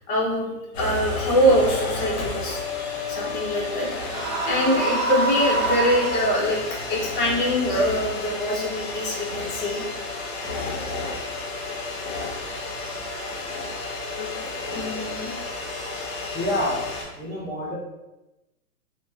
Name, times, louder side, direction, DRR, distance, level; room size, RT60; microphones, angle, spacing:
voice 1, 0.1-4.0 4.4-6.6 6.9-9.8 13.1-13.2 14.7-15.3, equal, 35° left, -4 dB, 0.9 m, -24 dB
sound 1, 0.7-17.0, left 3 dB, 60° left, 1.0 m, -32 dB
sound 2, 4.0-6.7, right 3 dB, 70° right, 0.8 m, -26 dB
voice 2, 16.3-16.9 17.2-17.7, left 1 dB, 10° right, -11 dB, 0.3 m, -27 dB
2.9 x 2.1 x 2.3 m, 0.99 s
hypercardioid pair, 140°, 44 cm